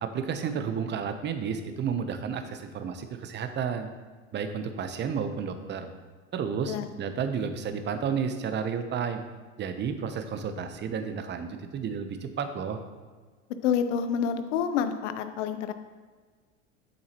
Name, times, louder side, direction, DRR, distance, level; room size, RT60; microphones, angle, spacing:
voice 1, 0.0-3.9 4.3-5.9 6.3-9.2 9.6-12.8, right 6 dB, 30° right, 8 dB, 0.8 m, -31 dB
voice 2, 13.6-15.7, left 7 dB, 70° left, 9 dB, 0.8 m, -28 dB
8.2 x 6.7 x 3.0 m, 1.5 s
hypercardioid pair, 90°, 38 cm